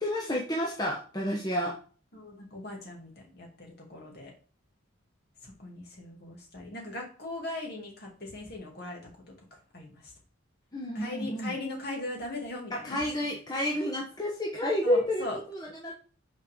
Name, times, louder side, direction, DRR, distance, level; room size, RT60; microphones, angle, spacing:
voice 1, 0.0-1.7 10.7-11.5 12.8-15.9, left 1 dB, 20° left, -2 dB, 1.0 m, -30 dB
voice 2, 2.1-4.3 5.4-9.0 9.7-10.0 10.9-13.0 14.8-15.4, left 2 dB, 50° left, 0 dB, 2.3 m, -39 dB
5.9 x 4.5 x 5.0 m, 0.39 s
head